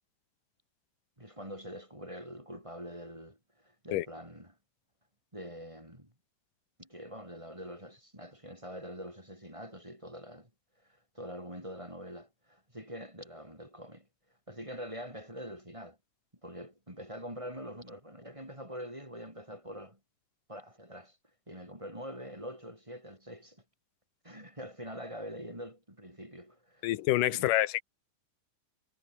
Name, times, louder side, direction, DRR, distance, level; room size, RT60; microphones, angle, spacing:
voice 1, 1.2-4.6 5.3-6.1 6.8-10.5 10.8-14.1 14.5-16.0 16.4-20.0 20.5-21.2 21.5-23.6 24.2-26.9 27.3-27.5, equal, 10° right, 5.5 m, -44 dB
voice 2, 26.8-27.8, left 15 dB, 85° left, 2.6 m, -27 dB
omnidirectional pair, 3.7 m